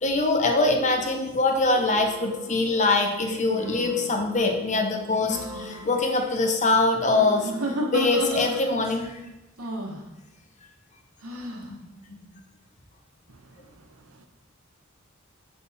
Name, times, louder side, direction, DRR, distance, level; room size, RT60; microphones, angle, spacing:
voice 1, 0.0-7.5 7.9-9.2 11.7-11.8 12.1-12.2, left 3 dB, 35° left, 0.8 m, -23 dB
sound 1, 0.6-1.2 1.9-8.1, right 1 dB, 40° right, 1.4 m, -43 dB
sound 2, 1.6-1.9 3.2-4.1 5.2-5.8 7.1-8.9 9.6-10.0 11.2-11.7, right 1 dB, 90° right, 1.0 m, -32 dB
voice 2, 13.3-13.8 14.2-14.3, right 2 dB, 75° right, 0.7 m, -55 dB
6.3 x 3.7 x 4.1 m
head